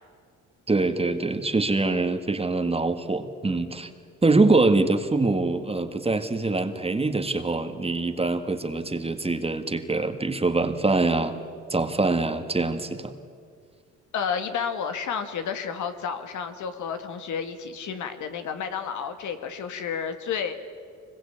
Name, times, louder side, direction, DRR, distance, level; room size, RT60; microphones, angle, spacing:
voice 1, 0.7-3.9 4.2-11.4 11.7-13.1, right 3 dB, 20° right, 7 dB, 1.9 m, -24 dB
voice 2, 14.1-20.5, left 7 dB, 75° left, 7 dB, 2.1 m, -31 dB
24.5 x 21.5 x 8.7 m, 2.1 s
cardioid pair, 90°, 30 cm